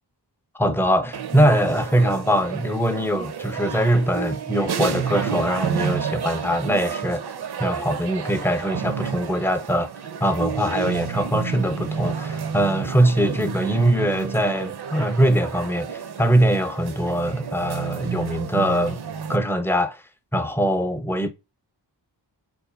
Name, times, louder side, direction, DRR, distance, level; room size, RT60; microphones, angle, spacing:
voice 1, 0.5-7.2 7.6-9.9 10.2-19.0 19.3-20.0 20.3-21.3, right 1 dB, 5° left, 0.3 m, -22 dB
sound 1, 1.1-19.4, right 7 dB, 65° right, 0.5 m, -31 dB
3.8 x 2.5 x 2.3 m
wide cardioid pair, 115°, 43 cm